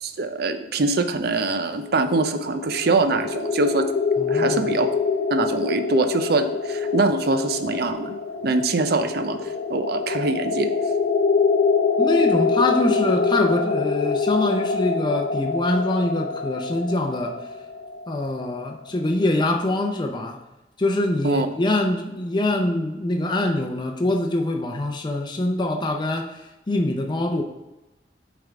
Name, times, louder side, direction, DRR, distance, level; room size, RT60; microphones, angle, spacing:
voice 1, 0.0-3.9 4.3-4.9 5.3-8.1 8.4-10.7 21.2-21.5, right 3 dB, 60° right, 9 dB, 0.5 m, -23 dB
sound 1, 1.9-18.7, left 5 dB, 70° left, 0.7 m, -25 dB
voice 2, 4.2-4.7 12.0-17.4 18.1-20.4 20.8-26.4 26.7-27.4, left 1 dB, 25° left, 2 dB, 0.6 m, -24 dB
8.7 x 3.5 x 3.5 m, 1.0 s
head